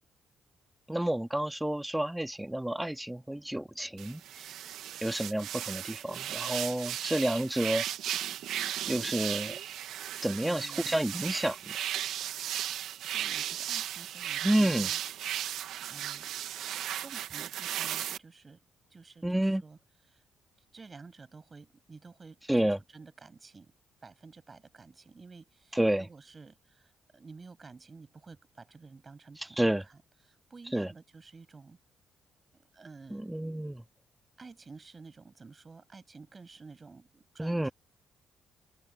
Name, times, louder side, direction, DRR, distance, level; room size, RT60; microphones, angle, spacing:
voice 1, 0.9-4.5 5.0-7.8 8.9-9.6 10.2-11.6 14.4-14.9 19.2-19.6 22.5-22.8 25.7-26.1 29.6-29.8 30.7-30.9 33.1-33.8 37.4-37.7, right 1 dB, 5° right, 2.4 m, -30 dB
sound 1, 4.0-18.2, right 11 dB, 80° right, 1.7 m, -36 dB
voice 2, 10.4-11.0 12.7-15.0 15.3-16.3 17.0-18.6 18.9-19.8 20.1-20.2 20.7-22.6 22.9-23.7 24.0-30.0 30.3-31.8 32.5-33.3 34.4-37.7, right 4 dB, 30° right, 7.8 m, -51 dB
open air
cardioid pair, 90°, 0 cm